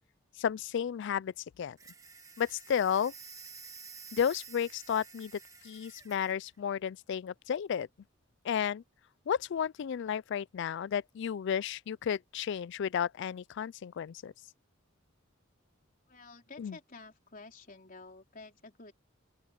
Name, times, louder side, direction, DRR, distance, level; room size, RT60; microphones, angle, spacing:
voice 1, 0.4-1.8 2.4-3.1 4.1-5.3 5.6-7.9 8.4-8.8 9.3-14.3 16.6-16.8, left 8 dB, 60° left, 0.3 m, -32 dB
sound 1, 1.8-6.4, right 6 dB, 15° right, 1.5 m, -51 dB
voice 2, 16.1-18.9, left 3 dB, 45° left, 4.0 m, -51 dB
open air
head